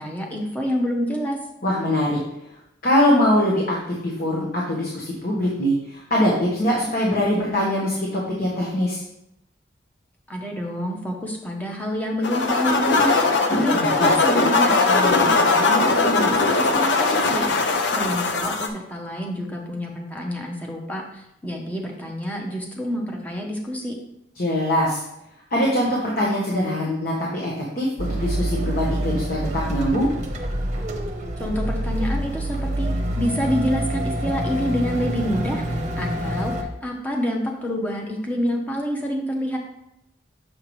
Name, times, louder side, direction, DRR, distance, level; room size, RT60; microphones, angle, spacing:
voice 1, 0.0-1.4 10.3-24.0 31.4-32.9 33.2-39.6, equal, 10° left, 0 dB, 0.9 m, -28 dB
voice 2, 1.6-2.2 2.8-3.8 4.0-9.0 13.5-14.1 24.4-25.0 25.5-30.1, left 1 dB, 50° left, -4 dB, 1.2 m, -22 dB
sound 1, 12.2-18.7, left 3 dB, 70° left, 0.6 m, -20 dB
sound 2, 28.0-36.6, right 1 dB, 40° right, 0.8 m, -26 dB
6.6 x 5.6 x 3.1 m, 0.82 s
head